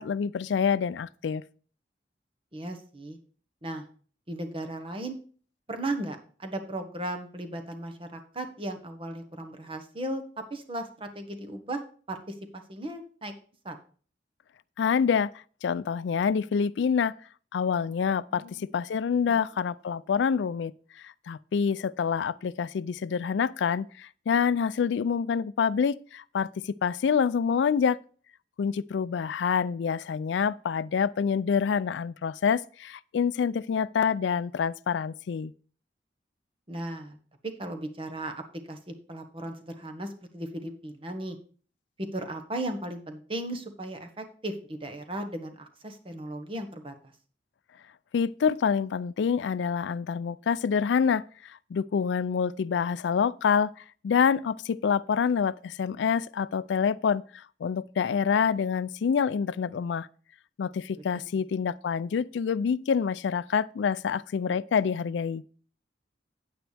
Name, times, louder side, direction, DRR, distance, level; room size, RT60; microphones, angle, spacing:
voice 1, 0.0-1.4 14.8-15.3 15.6-17.1 17.5-20.7 21.0-28.0 28.6-35.5 48.1-60.1 60.6-65.4, left 6 dB, 85° left, 0.4 m, -27 dB
voice 2, 2.5-3.2 3.6-3.8 4.3-5.2 5.7-10.2 10.5-11.8 12.1-13.3 13.6-13.8 18.3-18.7 19.2-19.4 36.7-37.2 37.4-41.4 42.1-46.9 61.1-61.2, right 1 dB, 30° right, 1.4 m, -36 dB
9.0 x 9.0 x 3.4 m
head